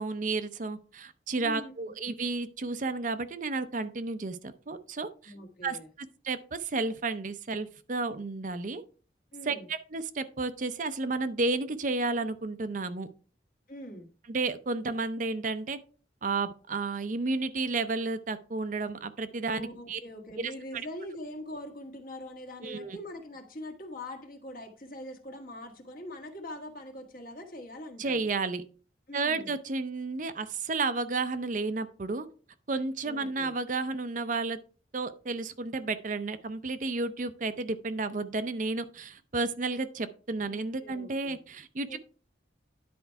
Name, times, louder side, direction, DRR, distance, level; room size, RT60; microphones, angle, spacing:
voice 1, 0.0-5.3 5.6-8.8 9.4-13.1 14.3-15.8 16.2-20.0 20.4-20.5 22.6-23.0 28.0-28.6 29.1-32.3 32.7-34.6 34.9-42.0, right 3 dB, 45° right, 11 dB, 0.6 m, -32 dB
voice 2, 1.4-1.9 5.2-5.9 9.3-9.7 13.7-14.1 19.5-28.3 29.1-29.6 33.0-33.5 40.3-41.4 41.9-42.0, left 1 dB, 50° left, 3 dB, 1.6 m, -43 dB
10.5 x 4.5 x 4.5 m, 0.38 s
head